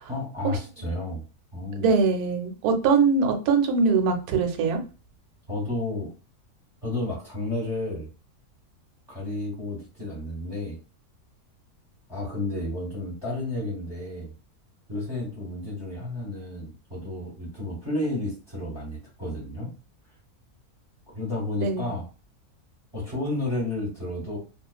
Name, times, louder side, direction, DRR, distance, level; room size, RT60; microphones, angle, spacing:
voice 1, 0.1-1.2 1.5-1.9 5.5-6.1 6.8-8.1 9.1-10.8 12.1-14.3 14.9-19.7 21.1-22.1 22.9-24.4, left 2 dB, 20° right, -4 dB, 0.9 m, -31 dB
voice 2, 1.8-4.8 21.6-21.9, right 5 dB, 80° right, 6 dB, 1.1 m, -22 dB
2.4 x 2.3 x 2.3 m, 0.34 s
omnidirectional pair, 1.6 m